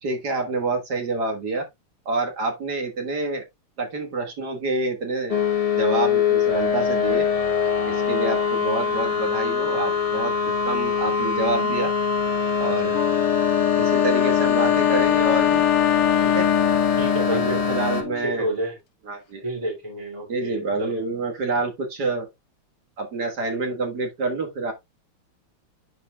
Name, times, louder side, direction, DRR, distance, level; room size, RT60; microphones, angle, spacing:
voice 1, 0.0-1.7 2.1-3.4 3.8-5.4 5.8-7.3 7.9-11.9 12.6-13.0 13.8-15.6 16.2-16.5 17.3-18.5 19.1-19.4 20.3-22.3 23.0-24.7, right 3 dB, 50° right, 2.0 m, -27 dB
sound 1, 5.3-18.0, left 6 dB, 40° left, 0.5 m, -23 dB
Wind instrument woodwind instrument, 12.9-18.3, left 13 dB, 80° left, 2.0 m, -23 dB
voice 2, 17.0-18.8 19.4-21.0, right 1 dB, 15° right, 2.2 m, -30 dB
11.5 x 4.4 x 2.3 m
omnidirectional pair, 2.4 m